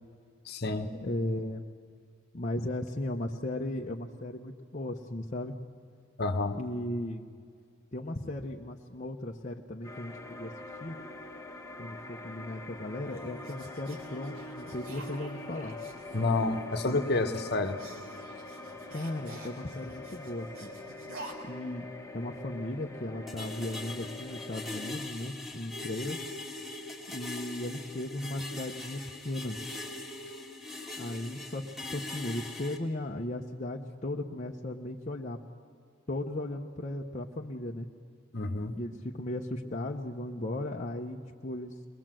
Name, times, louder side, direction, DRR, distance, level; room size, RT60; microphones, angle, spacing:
voice 1, 0.5-0.9 6.2-6.6 16.1-17.8 38.3-38.8, left 2 dB, 50° left, 8 dB, 1.1 m, -29 dB
voice 2, 1.0-1.6 2.3-5.5 6.5-7.3 7.9-10.5 10.8-11.0 11.8-15.8 18.9-20.7 21.4-21.9 22.1-26.2 27.1-29.6 31.0-31.6 31.9-35.4 36.1-37.9 38.7-41.7, left 1 dB, 35° left, 0 dB, 0.8 m, -36 dB
sound 1, 9.8-24.9, left 2 dB, 15° left, 1.5 m, -44 dB
sound 2, 12.5-21.3, right 2 dB, 80° right, 3.3 m, -50 dB
sound 3, 23.3-32.8, left 2 dB, ahead, 1.8 m, -41 dB
22.0 x 21.5 x 7.6 m, 2.2 s
head